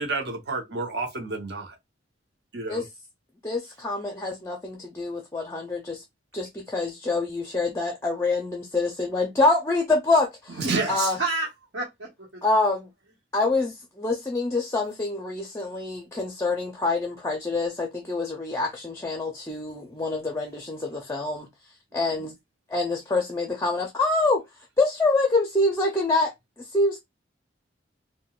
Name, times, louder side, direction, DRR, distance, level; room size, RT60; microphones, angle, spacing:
voice 1, 0.0-1.7 2.5-2.9 10.6-11.1, right 3 dB, 60° right, 0.8 m, -30 dB
voice 2, 3.4-6.0 6.3-10.6 10.9-11.2 12.4-12.9 13.3-21.5 21.9-22.3 22.7-24.4 24.8-26.3 26.7-27.0, left 2 dB, 15° left, 0.5 m, -26 dB
voice 3, 10.6-12.4 21.9-22.2, right 3 dB, 90° right, 1.1 m, -31 dB
3.7 x 2.2 x 2.3 m
head